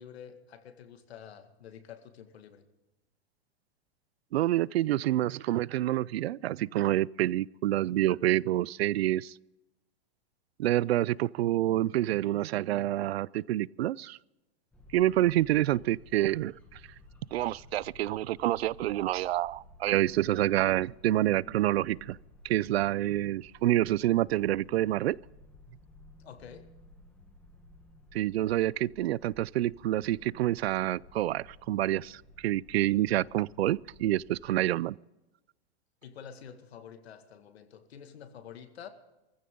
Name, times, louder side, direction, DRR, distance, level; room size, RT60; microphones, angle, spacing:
voice 1, 0.0-2.7 26.2-26.8 36.0-38.9, left 8 dB, 80° left, 2.1 m, -48 dB
voice 2, 4.3-9.3 10.6-14.2 14.9-16.5 17.3-22.2 22.4-25.2 28.1-35.0, right 14 dB, 75° right, 0.5 m, -27 dB
sound 1, 14.7-34.4, left 2 dB, 5° left, 1.1 m, -55 dB
21.0 x 15.0 x 3.8 m
supercardioid pair, 175°, 31 cm